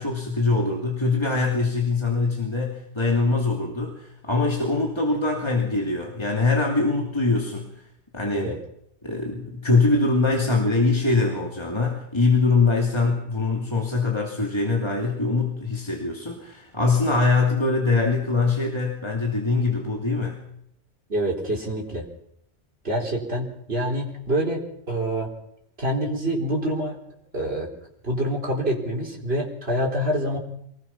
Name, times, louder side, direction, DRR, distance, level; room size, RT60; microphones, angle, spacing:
voice 1, 0.0-7.7 8.1-8.5 9.0-20.4, left 3 dB, 25° left, 0 dB, 2.7 m, -23 dB
voice 2, 21.1-22.0 22.8-25.3 25.8-27.0 27.3-27.7 28.0-30.4, right 1 dB, 65° right, -1 dB, 4.3 m, -26 dB
24.5 x 19.5 x 6.0 m, 0.73 s
omnidirectional pair, 1.1 m